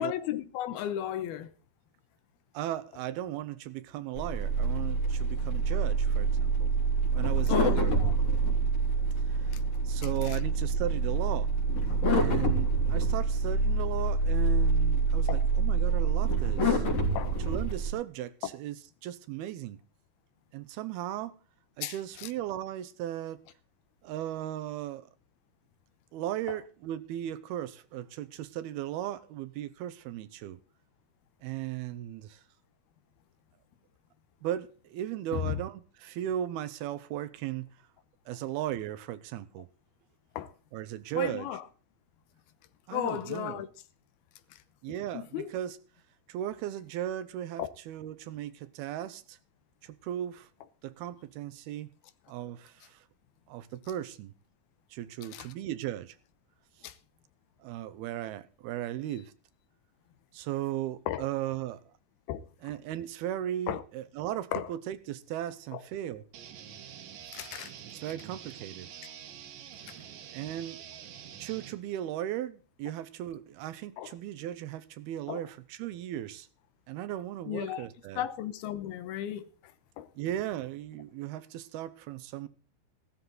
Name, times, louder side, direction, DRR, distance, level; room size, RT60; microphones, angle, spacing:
voice 1, 0.0-1.5 7.5-8.1 10.0-10.4 15.3-15.5 17.2-17.4 21.8-22.3 26.5-26.6 35.3-35.6 40.4-40.5 41.1-41.6 42.9-43.7 45.1-45.5 47.6-47.7 55.2-55.5 56.8-56.9 61.1-61.3 62.3-62.5 63.7-63.8 64.5-64.7 65.7-65.8 67.3-67.7 69.9-70.0 74.0-74.1 75.3-75.4 77.5-77.9 78.2-79.5 80.0-80.1, left 11 dB, 75° left, 2.8 m, -35 dB
voice 2, 2.5-6.7 7.1-8.0 9.3-9.5 9.9-11.5 12.1-16.8 17.5-18.8 19.0-19.8 20.5-21.3 21.8-23.4 24.0-25.1 26.1-30.6 31.4-32.4 34.4-37.7 38.3-39.7 40.7-41.5 42.9-43.6 44.8-45.8 46.3-49.4 49.8-50.5 50.8-51.9 52.3-53.0 53.5-54.3 54.9-56.2 57.6-59.3 60.3-61.8 62.6-66.2 67.9-68.9 70.3-70.8 71.4-76.5 76.9-78.3 80.2-82.5, right 12 dB, 80° right, 2.8 m, -36 dB
sound 1, 4.2-17.9, right 3 dB, 40° left, 4.3 m, -26 dB
sound 2, 66.3-71.7, right 9 dB, 65° right, 2.9 m, -46 dB
16.0 x 13.0 x 3.9 m
omnidirectional pair, 4.6 m